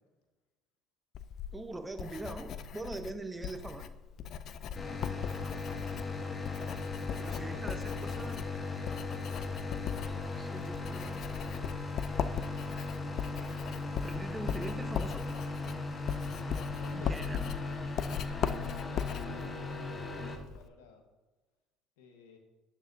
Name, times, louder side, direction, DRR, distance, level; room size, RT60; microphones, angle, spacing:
Writing, 1.1-20.7, left 8 dB, 55° left, 0.4 m, -39 dB
voice 1, 1.5-3.9 7.2-8.4 9.1-9.2 10.1-11.2 13.4-13.8 14.0-15.3 16.9-17.5, right 2 dB, 15° right, 8 dB, 0.9 m, -42 dB
sound 1, 4.7-20.4, left 3 dB, 30° left, 1.1 m, -38 dB
voice 2, 7.0-8.3 16.8-17.6 18.4-21.0 22.0-22.4, left 4 dB, 85° left, 4 dB, 1.2 m, -53 dB
12.0 x 7.3 x 2.7 m, 1.2 s
hypercardioid pair, 70°, 0 cm